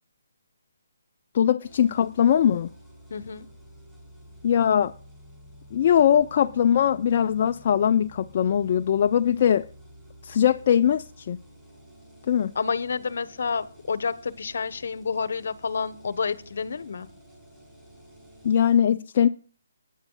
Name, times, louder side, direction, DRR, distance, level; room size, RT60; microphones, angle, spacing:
voice 1, 1.3-2.7 4.4-4.9 5.7-9.7 10.2-11.4 12.3-12.5 18.4-19.3, left 9 dB, 40° left, 0.4 m, -21 dB
sound 1, 1.6-18.8, equal, 10° right, 6.0 m, -51 dB
voice 2, 3.1-3.5 12.5-17.1, left 5 dB, 60° left, 0.9 m, -29 dB
22.5 x 10.0 x 2.3 m
figure-of-eight pair, 150°, 0 cm